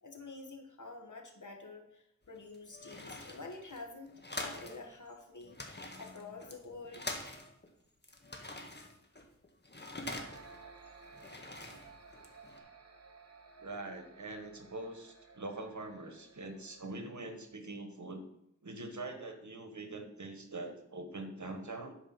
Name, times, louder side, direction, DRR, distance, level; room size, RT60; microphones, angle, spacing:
voice 1, 0.0-7.2, left 3 dB, 90° left, 3 dB, 1.6 m, -48 dB
sound 1, 2.2-4.8 5.1-5.2 5.4-7.7 8.0-10.6 11.0-12.6, left 2 dB, 35° left, 1.6 m, -45 dB
sound 2, 10.0-17.5, right 4 dB, 55° right, 1.4 m, -56 dB
voice 2, 13.6-18.2 18.6-21.9, right 2 dB, 75° right, 6 dB, 1.5 m, -43 dB
11.5 x 5.0 x 6.0 m, 0.79 s
wide cardioid pair, 55°, 29 cm